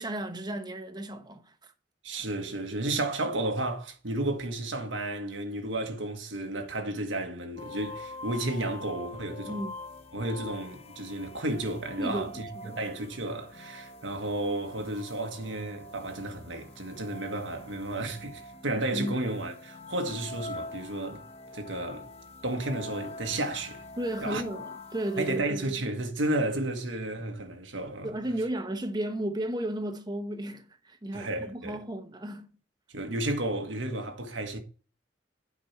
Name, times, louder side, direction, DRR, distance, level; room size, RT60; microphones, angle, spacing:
voice 1, 0.0-1.7 9.5-9.7 12.0-12.8 18.9-19.2 24.0-25.7 28.0-32.6, right 1 dB, 20° right, 1.0 m, -34 dB
voice 2, 2.0-9.6 10.1-21.2 21.5-22.1 22.4-23.8 24.2-24.4 25.2-28.1 31.1-31.8 32.9-34.6, right 2 dB, 85° right, 1.6 m, -32 dB
sound 1, 7.6-25.4, left 2 dB, 35° left, 0.8 m, -45 dB
8.7 x 5.4 x 4.4 m
head